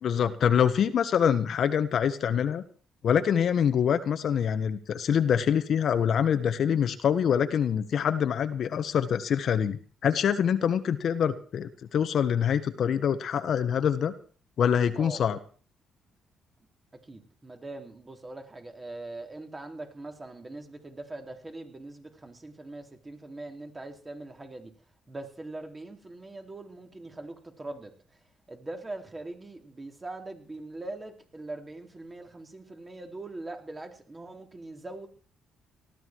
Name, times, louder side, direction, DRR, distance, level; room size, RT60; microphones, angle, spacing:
voice 1, 0.0-2.6 3.0-14.1 14.6-15.4, left 8 dB, 65° left, 1.4 m, -25 dB
voice 2, 17.0-24.7 25.1-35.1, right 2 dB, 25° right, 4.1 m, -42 dB
19.0 x 13.5 x 4.7 m
cardioid pair, 90°, 0 cm